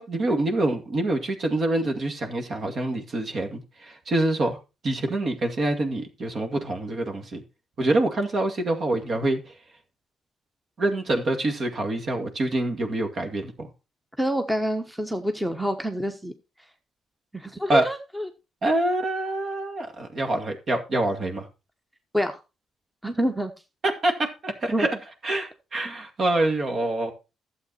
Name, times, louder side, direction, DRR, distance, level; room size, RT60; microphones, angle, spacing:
voice 1, 0.0-4.6 4.8-7.4 7.8-9.6 10.8-13.7 17.7-17.9 18.6-21.5 23.8-25.0 25.2-27.1, right 2 dB, 50° right, 2.1 m, -26 dB
voice 2, 14.2-16.3 17.3-18.3 22.1-22.4 23.0-23.5 24.7-24.9, equal, 5° right, 1.2 m, -27 dB
12.0 x 7.7 x 4.1 m
cardioid pair, 90°, 0 cm